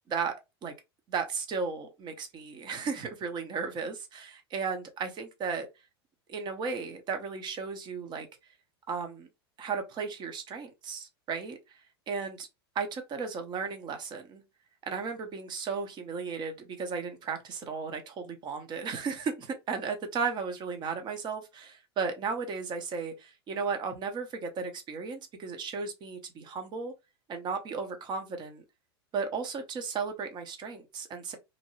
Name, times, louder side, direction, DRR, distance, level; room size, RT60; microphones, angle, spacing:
voice 1, 1.1-5.7 6.3-8.3 8.9-9.3 9.6-11.8 12.1-12.5 12.7-14.4 14.8-26.9 27.3-28.6 29.1-31.4, right 5 dB, 35° right, 0.8 m, -35 dB
2.6 x 2.2 x 3.0 m
hypercardioid pair, 95°, 13 cm